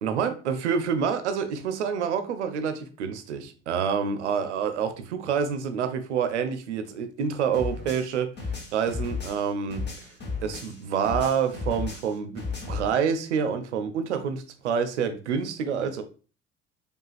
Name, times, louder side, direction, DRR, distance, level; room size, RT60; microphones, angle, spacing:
voice 1, 0.0-10.1 10.4-16.0, right 7 dB, 80° right, 9 dB, 0.5 m, -28 dB
sound 1, 7.5-10.8 11.0-12.9, left 4 dB, 30° left, 1.0 m, -34 dB
4.8 x 2.3 x 2.3 m, 0.36 s
figure-of-eight pair, 55°, 35 cm